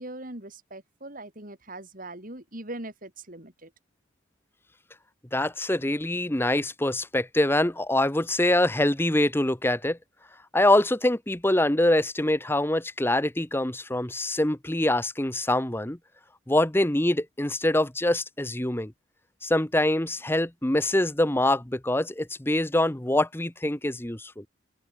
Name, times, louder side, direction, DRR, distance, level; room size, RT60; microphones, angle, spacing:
voice 1, 0.0-3.7, right 1 dB, 45° right, 5.1 m, -41 dB
voice 2, 5.3-10.0 10.5-16.0 16.5-18.9 19.4-24.4, left 1 dB, 10° left, 1.1 m, -24 dB
open air
head